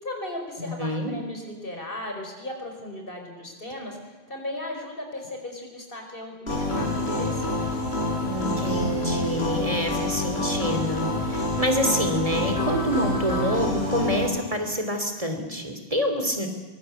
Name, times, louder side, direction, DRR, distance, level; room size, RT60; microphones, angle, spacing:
voice 1, 0.0-7.7, left 1 dB, 60° left, 3 dB, 5.0 m, -36 dB
voice 2, 0.6-1.1 8.2-16.5, equal, 35° right, 5 dB, 3.1 m, -27 dB
sound 1, 6.5-14.3, left 1 dB, 75° left, 6.0 m, -27 dB
24.0 x 20.5 x 8.3 m, 1.2 s
omnidirectional pair, 1.1 m